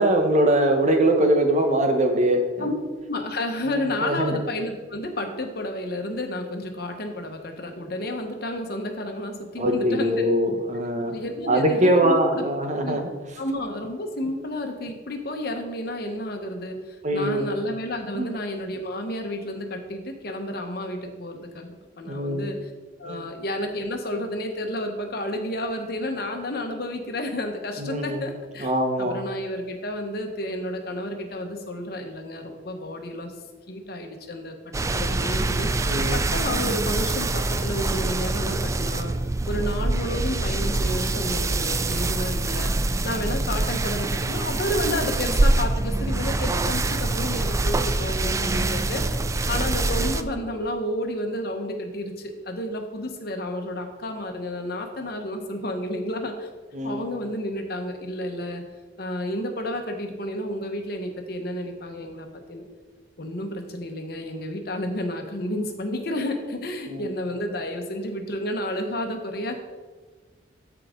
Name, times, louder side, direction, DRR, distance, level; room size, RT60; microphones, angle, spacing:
voice 1, 0.0-2.7 4.0-4.4 9.6-11.1 11.5-13.0 17.0-17.5 18.1-18.2 22.0-22.4 23.0-23.2 27.8-28.2 28.6-29.2 35.8-36.2 56.7-57.1 66.9-67.1, right 1 dB, 40° right, 5 dB, 1.1 m, -22 dB
voice 2, 3.1-10.2 11.1-12.4 12.8-13.0 13.4-22.7 23.0-33.3 33.7-34.5 34.9-39.1 39.5-42.7 43.0-49.1 49.5-56.5 56.8-58.6 59.0-62.7 63.2-69.6, left 1 dB, 55° left, 4 dB, 1.2 m, -31 dB
sound 1, 34.7-50.2, right 2 dB, 15° right, 0.3 m, -25 dB
13.0 x 4.9 x 3.8 m, 1.4 s
head